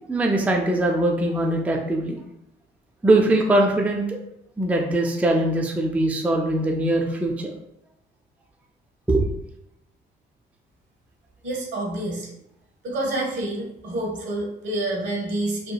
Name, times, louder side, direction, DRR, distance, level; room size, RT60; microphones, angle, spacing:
voice 1, 0.1-2.2 3.0-4.2 4.6-7.5 9.1-9.3, right 1 dB, 5° right, 1 dB, 0.3 m, -21 dB
voice 2, 11.4-12.3 12.8-15.7, right 1 dB, 70° right, -1 dB, 0.9 m, -28 dB
2.9 x 2.3 x 2.2 m, 0.80 s
cardioid pair, 90°, 20 cm